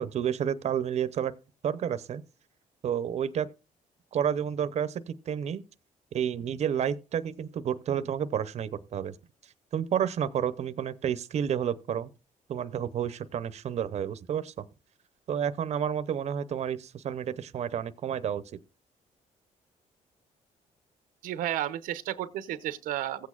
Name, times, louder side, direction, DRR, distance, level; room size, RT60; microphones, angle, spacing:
voice 1, 0.0-1.3 1.6-2.2 2.8-3.5 4.1-5.6 6.1-9.1 9.4-12.1 12.5-14.6 15.3-18.6, right 8 dB, 55° right, 0.7 m, -30 dB
voice 2, 21.2-23.3, right 12 dB, 90° right, 0.7 m, -32 dB
16.0 x 8.4 x 2.4 m
cardioid pair, 105°, 14 cm